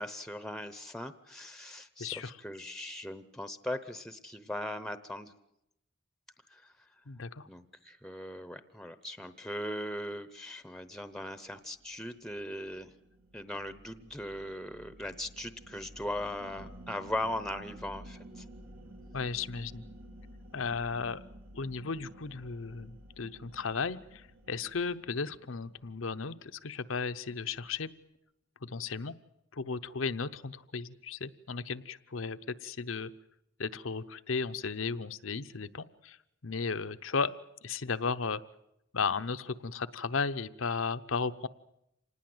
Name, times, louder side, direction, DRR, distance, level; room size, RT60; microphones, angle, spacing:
voice 1, 0.0-5.3 6.5-6.7 7.5-12.9 13.3-18.4, left 1 dB, 5° left, 12 dB, 0.8 m, -39 dB
voice 2, 2.0-2.3 7.1-7.5 19.1-19.8 20.5-21.2 21.5-27.9 28.6-29.1 29.5-33.1 33.6-36.2 36.4-37.3 37.6-38.4 38.9-41.5, left 5 dB, 75° left, 11 dB, 0.8 m, -35 dB
sound 1, 11.7-26.2, right 1 dB, 85° right, 3.4 m, -52 dB
26.5 x 19.5 x 7.9 m, 0.82 s
head